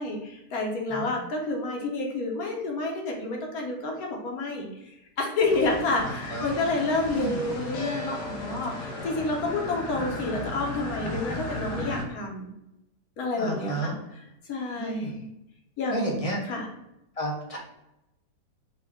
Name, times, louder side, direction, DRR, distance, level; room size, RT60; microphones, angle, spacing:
voice 1, 0.0-12.5 13.2-14.2 14.5-15.3 15.8-16.7, left 2 dB, 65° left, 1 dB, 1.3 m, -29 dB
voice 2, 0.9-1.2 6.0-6.5 7.1-7.4 13.4-13.9 14.8-15.1 15.9-16.4 17.2-17.6, right 1 dB, 40° left, -1 dB, 0.5 m, -32 dB
sound 1, 5.4-12.0, left 2 dB, 90° left, 1.4 m, -35 dB
5.2 x 2.4 x 3.6 m, 0.89 s
omnidirectional pair, 1.7 m